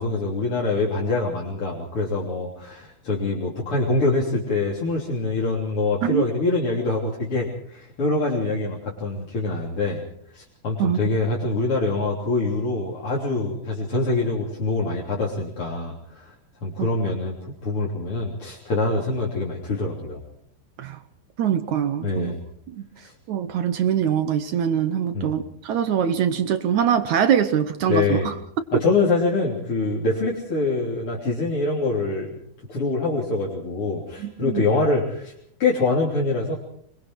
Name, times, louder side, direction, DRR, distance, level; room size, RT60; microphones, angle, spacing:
voice 1, 0.0-10.0 10.3-16.3 16.6-17.4 17.6-20.2 22.0-22.4 23.0-23.1 25.1-25.4 27.9-28.3 28.7-32.4 32.7-35.3 35.6-36.6, left 3 dB, 35° left, -4 dB, 3.9 m, -24 dB
voice 2, 10.8-11.2 16.8-16.9 20.8-21.0 21.4-22.3 22.7-22.9 23.3-28.3 34.2-34.6, right 9 dB, 65° right, 10 dB, 2.0 m, -23 dB
26.0 x 23.0 x 4.7 m, 0.64 s
omnidirectional pair, 4.4 m